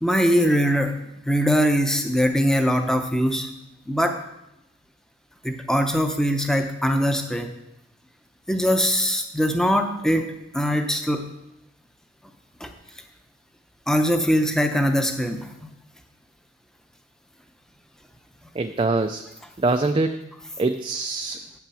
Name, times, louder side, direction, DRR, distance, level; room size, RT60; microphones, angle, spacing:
voice 1, 0.0-1.0 1.2-3.5 3.9-4.2 5.4-7.5 8.5-11.3 12.6-12.7 13.9-15.5, equal, 5° left, 5 dB, 0.7 m, -22 dB
voice 2, 18.6-19.2 19.6-20.2 20.6-21.4, right 3 dB, 25° right, 7 dB, 0.3 m, -23 dB
8.6 x 5.8 x 7.0 m, 0.89 s
head